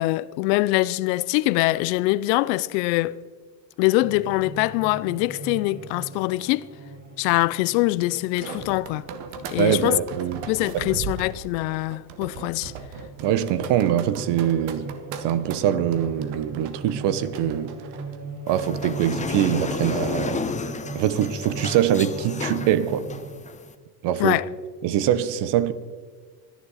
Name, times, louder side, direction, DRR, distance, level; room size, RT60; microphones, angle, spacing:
voice 1, 0.0-3.2 3.8-6.7 7.2-9.0 9.5-10.0 10.5-12.7 24.2-24.5, left 19 dB, 85° left, 0.6 m, -23 dB
sound 1, 4.0-12.2 12.5-23.4, right 3 dB, 35° right, 4.4 m, -39 dB
sound 2, 8.1-18.2, right 6 dB, 75° right, 1.6 m, -38 dB
voice 2, 9.6-10.9 13.2-14.9 15.2-17.7 18.5-20.5 20.9-23.1 24.0-24.4 24.8-25.7, right 10 dB, 55° right, 1.1 m, -23 dB
sound 3, 18.5-23.7, left 5 dB, 15° left, 0.8 m, -32 dB
25.5 x 10.5 x 4.1 m
cardioid pair, 125°, 49 cm